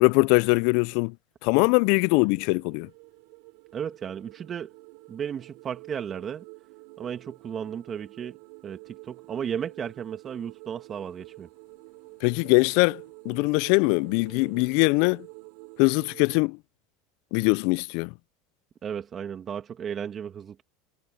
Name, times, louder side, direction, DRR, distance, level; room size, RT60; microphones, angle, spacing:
voice 1, 0.0-1.1 1.4-2.9 12.2-15.3 15.8-16.6 17.3-18.1, left 30 dB, 65° left, 0.4 m, -22 dB
sound 1, 1.8-16.4, right 36 dB, 65° right, 4.1 m, -48 dB
voice 2, 3.7-4.7 5.1-6.4 7.0-8.4 8.6-11.5 18.8-20.6, right 8 dB, 35° right, 2.3 m, -34 dB
hypercardioid pair, 95°, 0 cm